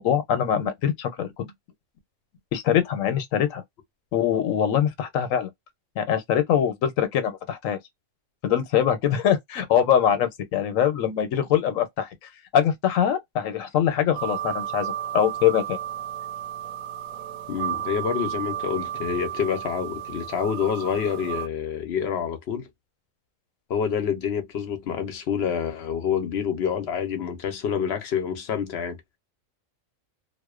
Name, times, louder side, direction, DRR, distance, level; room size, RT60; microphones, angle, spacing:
voice 1, 0.0-1.4 2.5-3.6 4.1-5.5 6.0-7.8 8.4-12.1 12.5-15.8, left 9 dB, 85° left, 1.0 m, -23 dB
sound 1, 14.1-21.5, right 10 dB, 85° right, 1.0 m, -33 dB
voice 2, 17.5-22.7 23.7-29.0, left 7 dB, 60° left, 0.8 m, -27 dB
2.5 x 2.1 x 2.3 m
omnidirectional pair, 1.4 m